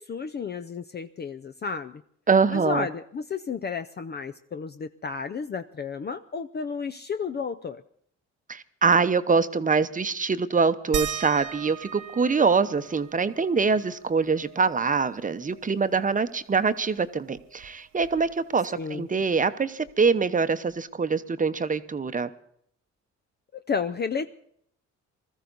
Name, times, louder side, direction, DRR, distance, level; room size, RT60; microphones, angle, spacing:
voice 1, 0.0-2.0 2.5-7.8 18.7-19.1 23.5-24.4, left 5 dB, 35° left, 10 dB, 0.6 m, -32 dB
voice 2, 2.3-2.9 8.5-22.3, right 5 dB, 25° right, 11 dB, 0.8 m, -24 dB
sound 1, 10.9-16.1 16.4-16.5 16.8-18.6 19.9-20.0 20.7-20.8, right 9 dB, 80° right, 1.0 m, -39 dB
20.5 x 14.0 x 4.0 m, 0.67 s
cardioid pair, 90°, 30 cm